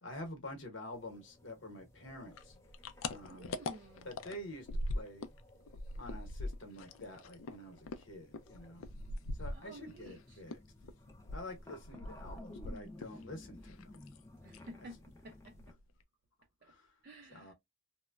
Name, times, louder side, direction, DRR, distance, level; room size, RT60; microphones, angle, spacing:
voice 1, 0.0-2.5 3.0-3.6 4.0-4.7 4.9-5.3 5.9-8.9 9.4-10.6 11.3-14.0 14.8-14.9 16.7-16.9 17.3-17.5, left 1 dB, 65° left, 0.9 m, -48 dB
sound 1, 0.9-15.7, left 1 dB, 15° left, 0.4 m, -57 dB
sound 2, 2.3-5.4 5.6-10.1 10.5-13.2 13.5-14.2 14.5-14.7 15.1-15.2 15.4-16.0, left 2 dB, 80° left, 0.4 m, -42 dB
voice 2, 3.3-4.1 9.5-10.4 14.4-15.0 15.2-15.7 16.6-16.7 17.0-17.5, right 1 dB, 45° right, 0.4 m, -52 dB
3.0 x 2.1 x 2.2 m
head